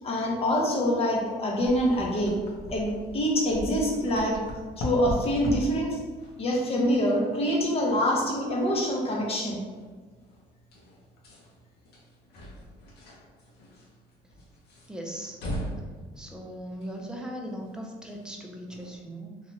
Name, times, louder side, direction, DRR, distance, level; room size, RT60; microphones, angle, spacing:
voice 1, 0.0-2.4 2.7-4.4 4.8-6.0 6.4-9.6, equal, 35° left, -1 dB, 0.7 m, -25 dB
sound 1, 1.6-19.0, equal, 75° left, 0.7 m, -41 dB
voice 2, 14.9-15.4 16.2-19.4, equal, 5° right, 0 dB, 0.4 m, -38 dB
2.8 x 2.3 x 2.9 m, 1.4 s
cardioid pair, 110°, 17 cm